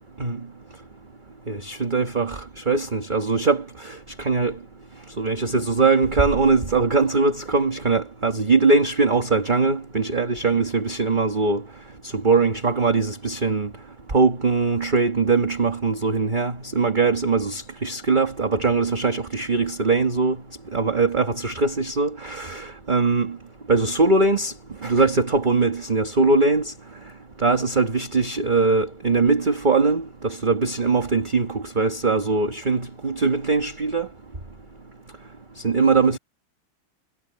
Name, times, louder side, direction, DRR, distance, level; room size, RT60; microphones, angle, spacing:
voice 1, 1.5-4.6 5.2-11.6 12.1-13.7 14.1-20.4 20.7-23.4 23.7-24.5 24.8-26.7 27.4-34.1 35.6-36.2, right 3 dB, 25° right, 1.6 m, -21 dB
omnidirectional pair, 2.3 m